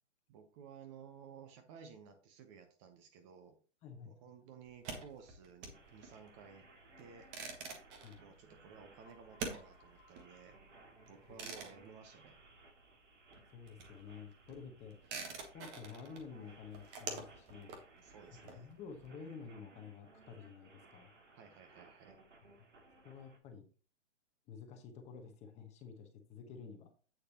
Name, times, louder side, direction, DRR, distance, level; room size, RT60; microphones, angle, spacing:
voice 1, 0.3-3.5 4.0-6.7 7.0-7.7 8.2-10.6 11.1-12.4 18.0-18.7 21.3-22.2, right 6 dB, 25° right, 7 dB, 0.8 m, -56 dB
voice 2, 3.8-4.1 8.0-8.2 13.5-15.0 15.5-17.8 18.3-21.1 22.6-22.7 23.0-23.7 24.5-26.9, left 6 dB, 20° left, 5 dB, 1.1 m, -51 dB
sound 1, 4.7-13.0 13.3-19.1, right 4 dB, 10° right, 0.3 m, -48 dB
sound 2, 5.7-23.4, right 3 dB, 85° right, 2.5 m, -62 dB
sound 3, 8.9-14.6, left 3 dB, 35° left, 2.4 m, -71 dB
8.3 x 6.5 x 2.9 m, 0.38 s
hypercardioid pair, 135°, 36 cm